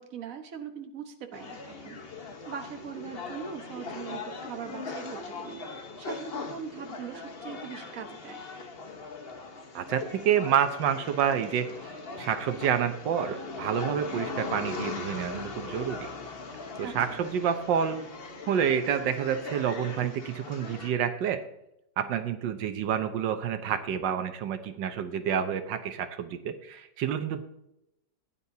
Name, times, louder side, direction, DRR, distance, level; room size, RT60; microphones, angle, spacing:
voice 1, 0.0-2.0 2.5-8.4 16.8-17.2, right 7 dB, 50° right, 5 dB, 1.5 m, -41 dB
sound 1, 1.3-20.9, left 4 dB, 40° left, 1.2 m, -40 dB
voice 2, 9.7-16.1 16.8-18.0 18.5-21.4 22.0-27.4, right 8 dB, 85° right, 9 dB, 1.5 m, -28 dB
16.5 x 9.9 x 2.7 m, 0.85 s
omnidirectional pair, 1.9 m